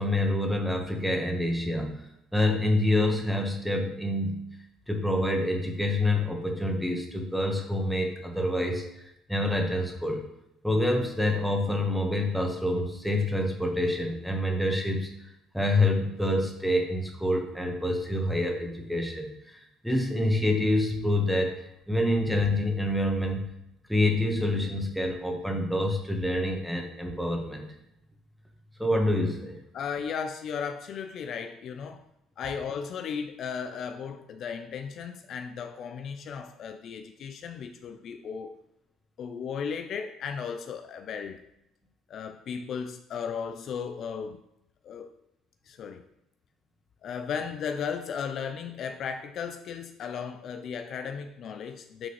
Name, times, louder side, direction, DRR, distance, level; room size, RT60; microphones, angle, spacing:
voice 1, 0.0-2.0 2.3-4.5 4.9-10.2 10.6-15.1 15.5-23.5 23.9-27.7 28.8-29.6, left 1 dB, ahead, 2 dB, 1.4 m, -27 dB
voice 2, 29.7-32.1 32.4-38.5 39.2-41.4 42.1-44.4 44.8-45.1 45.7-46.0 47.0-52.1, left 6 dB, 55° left, 8 dB, 0.4 m, -35 dB
8.6 x 3.8 x 3.2 m, 0.81 s
supercardioid pair, 75°, 0 cm